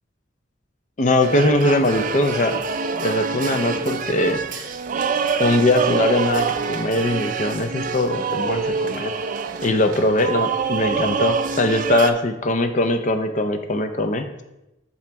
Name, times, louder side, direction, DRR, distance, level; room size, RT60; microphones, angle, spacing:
voice 1, 1.0-2.6 3.0-4.7 5.4-9.1 9.6-14.4, left 2 dB, 40° left, 7 dB, 0.5 m, -21 dB
sound 1, 1.2-12.1, right 5 dB, 40° right, 0.3 m, -25 dB
6.3 x 5.8 x 3.4 m, 0.95 s
head